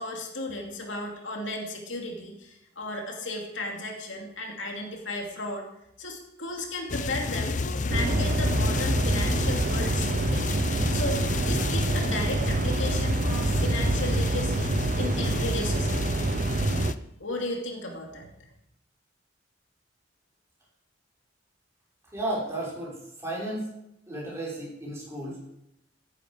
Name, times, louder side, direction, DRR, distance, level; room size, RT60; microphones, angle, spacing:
voice 1, 0.0-5.7 6.0-10.5 10.9-14.7 14.9-16.0 17.2-18.5, left 2 dB, 85° left, 1 dB, 2.5 m, -34 dB
sound 1, 6.9-17.0, left 3 dB, 40° left, 0.5 m, -30 dB
sound 2, 7.9-16.9, right 3 dB, 45° right, 0.6 m, -27 dB
voice 2, 22.1-23.7 24.1-25.4, right 1 dB, 15° right, -6 dB, 5.5 m, -33 dB
14.0 x 11.5 x 5.1 m, 0.82 s
head